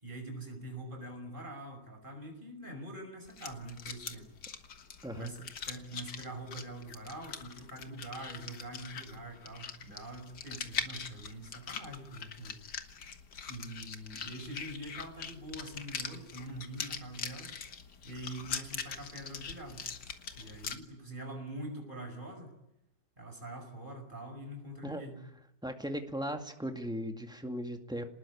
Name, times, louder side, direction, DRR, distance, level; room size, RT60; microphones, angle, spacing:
voice 1, 0.0-4.3 5.1-12.6 13.5-17.5 18.0-19.9 20.4-22.5 23.2-25.2, right 1 dB, 25° right, 4 dB, 6.0 m, -44 dB
sound 1, 3.2-20.8, left 6 dB, 60° left, 2.1 m, -42 dB
voice 2, 25.6-28.0, equal, ahead, 5 dB, 1.9 m, -37 dB
26.0 x 20.0 x 8.6 m, 0.87 s
omnidirectional pair, 2.1 m